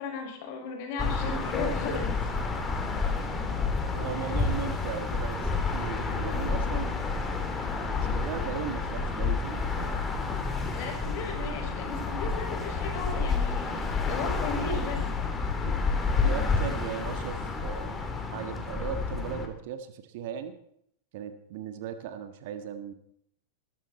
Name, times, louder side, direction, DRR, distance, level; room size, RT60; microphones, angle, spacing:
voice 1, 0.0-2.1 10.7-15.1, left 3 dB, 45° left, 2 dB, 6.0 m, -36 dB
sound 1, 1.0-19.5, left 4 dB, 15° left, 2.6 m, -30 dB
voice 2, 1.4-2.0 2.6-2.9 3.9-7.0 7.9-10.1 15.6-15.7 16.2-18.0 18.3-20.6 21.1-22.9, right 8 dB, 50° right, 9 dB, 1.7 m, -38 dB
21.0 x 13.0 x 4.3 m, 0.71 s
figure-of-eight pair, 90°, 0 cm